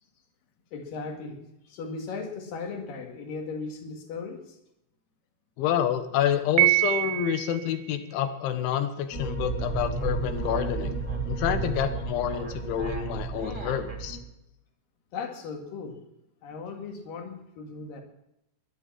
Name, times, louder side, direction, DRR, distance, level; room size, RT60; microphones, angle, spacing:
voice 1, 0.7-1.4 1.7-4.6 15.1-16.0 16.4-18.0, left 4 dB, 55° left, 4 dB, 3.5 m, -37 dB
voice 2, 5.6-11.0 11.3-14.2, left 9 dB, 90° left, 9 dB, 3.7 m, -28 dB
Piano, 6.6-7.7, right 19 dB, 80° right, 3.0 m, -24 dB
sound 1, 9.1-14.2, right 4 dB, 30° left, 1.6 m, -32 dB
sound 2, 9.9-14.0, right 1 dB, 20° right, 1.6 m, -44 dB
18.5 x 11.5 x 5.9 m, 0.84 s
omnidirectional pair, 5.2 m